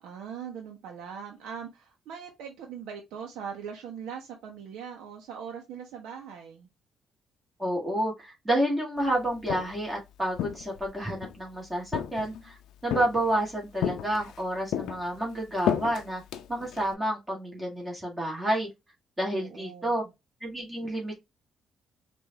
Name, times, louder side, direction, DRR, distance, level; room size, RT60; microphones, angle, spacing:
voice 1, 0.0-6.7 19.3-20.1, right 7 dB, 90° right, 0.8 m, -41 dB
voice 2, 7.6-16.2 16.5-18.7 19.2-20.0 20.4-21.2, right 1 dB, 15° right, 2.0 m, -29 dB
Walk footsteps, 9.2-9.9 10.4-11.4 11.9-12.5 12.9-13.4 13.8-14.4 14.7-16.9, left 10 dB, 85° left, 0.5 m, -32 dB
4.7 x 2.6 x 2.9 m
cardioid pair, 90°, 0 cm